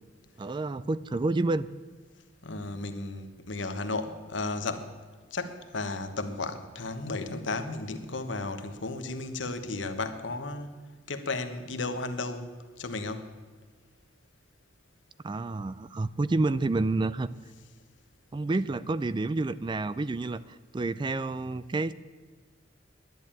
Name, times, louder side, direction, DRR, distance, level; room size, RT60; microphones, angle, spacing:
voice 1, 0.4-1.7 15.2-17.3 18.3-21.9, right 2 dB, 25° right, 16 dB, 0.4 m, -29 dB
voice 2, 2.4-4.9 5.3-10.7 11.1-13.3, left 3 dB, 80° left, 8 dB, 1.3 m, -34 dB
11.0 x 10.5 x 8.8 m, 1.5 s
head